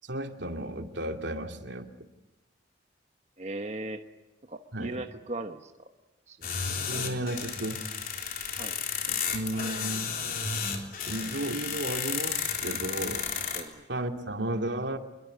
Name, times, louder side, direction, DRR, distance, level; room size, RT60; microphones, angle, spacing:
voice 1, 0.0-1.9 4.7-5.0 6.9-7.8 9.1-10.1 11.1-13.3 13.9-15.0, right 1 dB, 80° right, 5 dB, 2.6 m, -33 dB
voice 2, 3.4-4.0 4.5-5.7 6.3-6.5 8.6-8.7 13.5-13.8, right 2 dB, 40° right, 6 dB, 1.2 m, -37 dB
sound 1, 6.4-13.6, left 6 dB, 50° left, 3.7 m, -33 dB
26.5 x 23.0 x 9.7 m, 0.97 s
head